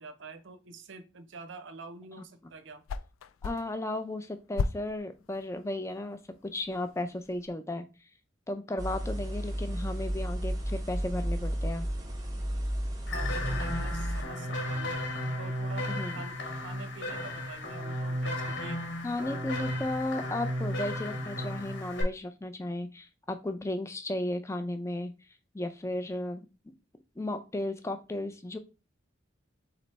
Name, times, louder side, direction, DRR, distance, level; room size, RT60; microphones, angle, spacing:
voice 1, 0.0-2.8 13.1-15.0 15.4-18.8, right 3 dB, 65° right, 0.6 m, -46 dB
Whip Dry, 2.5-7.5, left 5 dB, 90° left, 0.3 m, -39 dB
voice 2, 3.4-7.9 8.5-11.9 15.9-16.2 19.0-25.1 25.5-26.5 27.2-28.6, left 1 dB, 15° left, 0.4 m, -34 dB
sound 1, 8.8-14.2, equal, 20° right, 0.8 m, -32 dB
sound 2, 13.1-22.0, left 1 dB, 65° left, 1.3 m, -34 dB
4.0 x 3.3 x 4.0 m
head